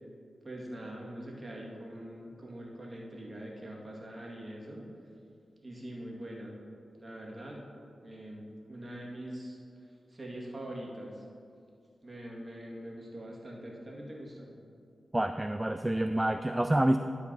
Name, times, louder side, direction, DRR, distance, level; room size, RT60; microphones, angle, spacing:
voice 1, 0.4-4.9 5.6-6.5 7.0-7.6 8.0-11.2 12.0-14.5, right 1 dB, 40° right, -3 dB, 2.0 m, -43 dB
voice 2, 15.1-17.0, right 1 dB, 20° right, 8 dB, 0.3 m, -27 dB
11.5 x 4.6 x 4.0 m, 2.5 s
cardioid pair, 40°, 0 cm